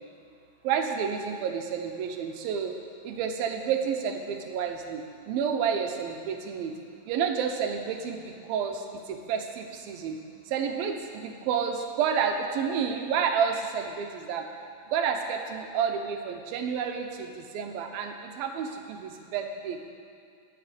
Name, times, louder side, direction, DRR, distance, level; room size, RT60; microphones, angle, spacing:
voice 1, 0.6-2.7 3.0-6.7 7.1-10.2 10.5-14.4 14.9-19.9, right 7 dB, 85° right, 4 dB, 2.8 m, -30 dB
20.0 x 7.1 x 5.1 m, 2.4 s
omnidirectional pair, 4.1 m